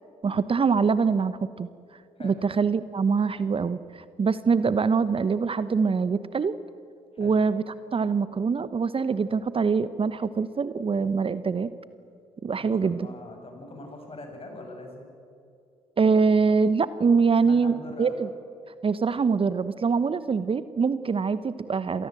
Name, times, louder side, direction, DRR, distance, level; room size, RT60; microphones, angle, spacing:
voice 1, 0.2-1.7 2.2-6.5 7.2-11.7 12.4-13.1 16.0-18.3 18.8-22.1, right 5 dB, 40° right, 14 dB, 1.0 m, -24 dB
voice 2, 12.6-15.1 17.4-18.2, left 2 dB, 40° left, 3 dB, 7.4 m, -43 dB
27.0 x 19.0 x 7.8 m, 2.4 s
hypercardioid pair, 45°, 15 cm